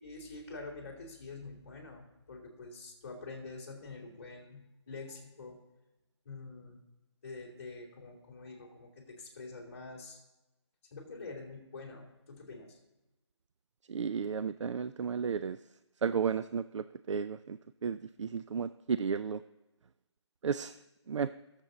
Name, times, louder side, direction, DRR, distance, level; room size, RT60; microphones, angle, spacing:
voice 1, 0.0-5.6 6.2-6.8 7.2-10.2 10.9-12.8, left 3 dB, 25° left, -3 dB, 2.7 m, -46 dB
voice 2, 13.9-15.6 16.0-19.4 20.4-20.7 21.1-21.3, right 6 dB, 85° right, 14 dB, 0.4 m, -33 dB
19.0 x 7.4 x 3.9 m, 1.0 s
hypercardioid pair, 175°, 15 cm